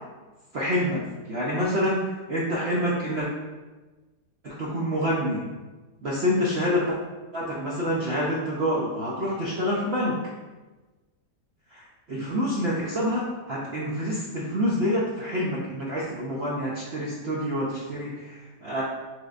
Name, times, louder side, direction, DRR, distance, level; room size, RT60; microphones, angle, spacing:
voice 1, 0.5-3.3 4.4-5.4 6.0-7.0 7.3-10.2 11.7-11.8 12.1-18.8, equal, 60° right, -5 dB, 0.7 m, -27 dB
6.3 x 3.2 x 2.5 m, 1.2 s
omnidirectional pair, 1.8 m